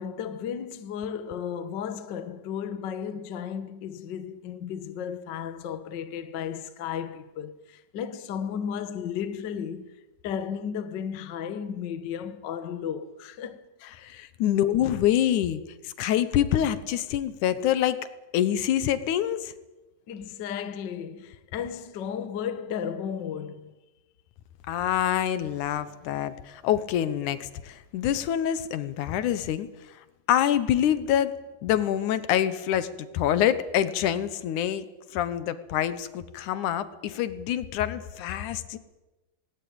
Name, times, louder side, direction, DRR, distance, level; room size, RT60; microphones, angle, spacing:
voice 1, 0.0-13.6 14.4-14.5 20.1-23.7, left 8 dB, 90° left, 0.9 m, -34 dB
voice 2, 14.0-18.0 18.3-19.5 24.7-30.0 30.3-31.3 31.6-38.8, left 11 dB, 70° left, 2.3 m, -26 dB
19.0 x 18.0 x 8.8 m
omnidirectional pair, 4.0 m